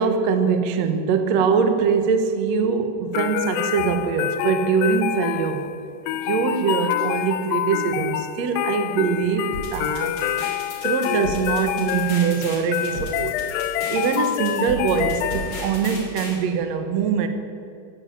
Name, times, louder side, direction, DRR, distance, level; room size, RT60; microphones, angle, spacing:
voice 1, 0.0-5.7 6.3-10.2 10.8-17.3, right 6 dB, 70° right, 7 dB, 1.6 m, -23 dB
sound 1, 3.1-15.9, left 12 dB, 80° left, 2.1 m, -27 dB
sound 2, 9.5-16.4, left 2 dB, 35° left, 3.7 m, -35 dB
15.0 x 11.0 x 8.7 m, 2.4 s
omnidirectional pair, 4.7 m